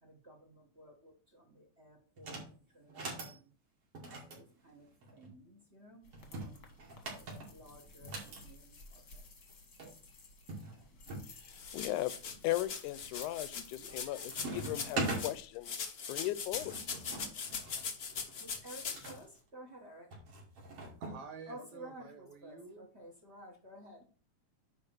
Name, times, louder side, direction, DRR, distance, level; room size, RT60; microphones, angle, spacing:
voice 1, 0.0-2.4 2.7-3.5 4.3-4.9 5.1-6.7 7.1-9.2 10.6-11.0 13.8-14.2 18.4-20.1 21.5-24.0, right 1 dB, 30° right, 1 dB, 1.2 m, -54 dB
sound 1, 2.2-2.5 2.9-3.4 4.0-5.3 6.1-8.4 9.5-9.6 9.8-9.9 10.5-11.3 11.8-12.4 12.9-13.3 13.6-14.0 14.3-15.3 16.2-19.2 20.1-21.2, right 2 dB, 50° right, 3.3 m, -42 dB
sound 2, 6.0-15.4, left 3 dB, 40° left, 1.4 m, -56 dB
voice 2, 11.5-12.1 12.4-15.8 16.1-16.8, left 15 dB, 85° left, 15 dB, 2.1 m, -37 dB
sound 3, 11.5-15.3 15.6-19.1, left 6 dB, 70° left, 0.8 m, -41 dB
voice 3, 21.0-22.9, right 5 dB, 70° right, 5 dB, 3.1 m, -50 dB
10.0 x 3.5 x 6.1 m, 0.39 s
omnidirectional pair, 3.5 m